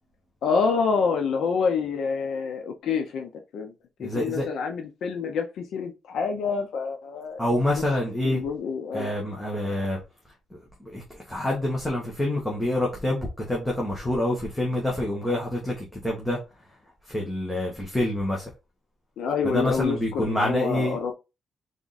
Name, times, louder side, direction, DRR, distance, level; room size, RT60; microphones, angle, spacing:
voice 1, 0.4-3.7 4.0-7.4 8.2-9.1 19.2-21.1, left 5 dB, 75° left, 0.7 m, -27 dB
voice 2, 4.0-4.5 7.4-8.4 8.9-10.0 10.5-16.4 17.1-18.4 19.4-21.1, left 1 dB, 10° left, 1.0 m, -27 dB
3.7 x 3.5 x 4.0 m
wide cardioid pair, 180°, 0 cm